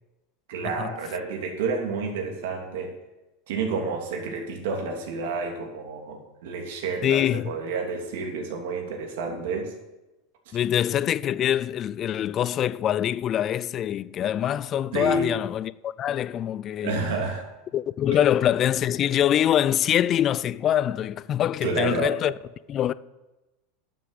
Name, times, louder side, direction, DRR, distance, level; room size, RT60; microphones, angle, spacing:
voice 1, 0.5-2.9 3.5-9.7 14.9-15.4 16.8-17.5 18.1-18.2 21.6-22.2, right 4 dB, 75° right, 2.9 m, -30 dB
voice 2, 7.0-7.5 10.5-17.1 17.7-22.3 22.7-22.9, left 10 dB, 35° left, 0.4 m, -24 dB
11.0 x 6.9 x 8.0 m
supercardioid pair, 135°, 0 cm